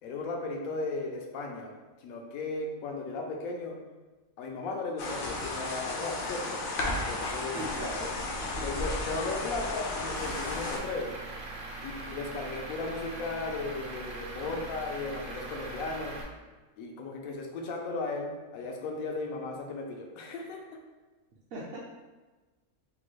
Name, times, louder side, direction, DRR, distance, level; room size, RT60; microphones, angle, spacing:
voice 1, 0.0-3.8 4.4-7.6 8.6-11.1 11.8-16.2 16.8-20.6, left 3 dB, 85° left, 2 dB, 1.0 m, -36 dB
sound 1, 5.0-10.8, left 2 dB, 65° left, 0.5 m, -34 dB
voice 2, 7.5-8.1 8.4-8.6 11.8-11.9 14.5-14.6 21.5-21.8, right 1 dB, 60° right, -6 dB, 0.6 m, -39 dB
Truck / Idling, 10.2-16.2, right 2 dB, 85° right, 1.1 m, -41 dB
3.4 x 2.2 x 3.1 m, 1.2 s
omnidirectional pair, 1.4 m